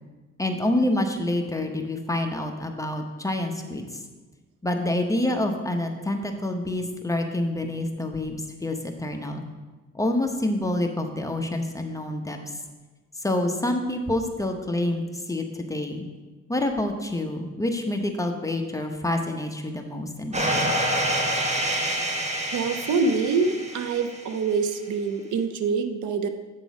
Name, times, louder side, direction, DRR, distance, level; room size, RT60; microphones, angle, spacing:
voice 1, 0.4-4.0 4.6-9.4 9.9-12.4 13.2-16.1 16.5-20.7, left 1 dB, 10° left, 4 dB, 0.9 m, -27 dB
sound 1, 20.3-24.4, right 1 dB, 20° right, 1.1 m, -27 dB
voice 2, 22.5-26.3, right 4 dB, 75° right, 8 dB, 0.7 m, -25 dB
8.2 x 3.8 x 6.1 m, 1.3 s
cardioid pair, 90°, 30 cm